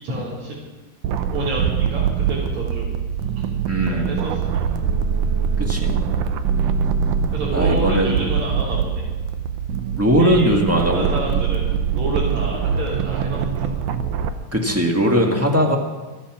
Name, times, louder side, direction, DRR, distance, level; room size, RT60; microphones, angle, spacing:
voice 1, 0.0-0.6 1.3-2.9 3.4-3.5 3.9-4.4 4.7-4.8 7.3-9.0 10.2-13.8, right 2 dB, 70° right, -9 dB, 4.8 m, -29 dB
sound 1, 1.0-14.3, right 7 dB, 85° right, 2.4 m, -23 dB
voice 2, 3.7-4.1 5.6-6.0 7.5-8.3 10.0-11.1 14.5-15.8, equal, 10° right, 1 dB, 1.1 m, -19 dB
25.0 x 8.7 x 6.2 m, 1.3 s
omnidirectional pair, 3.4 m